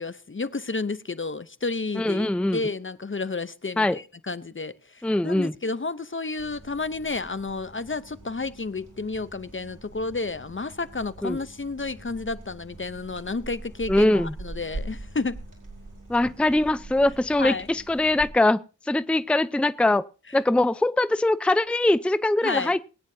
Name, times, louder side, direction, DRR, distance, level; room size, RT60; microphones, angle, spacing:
voice 1, 0.0-15.4 17.4-17.7 22.4-22.7, left 3 dB, 40° left, 0.7 m, -31 dB
voice 2, 2.0-2.6 3.8-4.0 5.0-5.5 11.2-11.4 13.9-14.3 16.1-20.0 20.3-22.8, left 2 dB, 5° left, 0.5 m, -22 dB
sound 1, 6.4-18.3, right 2 dB, 85° right, 4.5 m, -43 dB
22.0 x 9.5 x 2.7 m
wide cardioid pair, 40°, 31 cm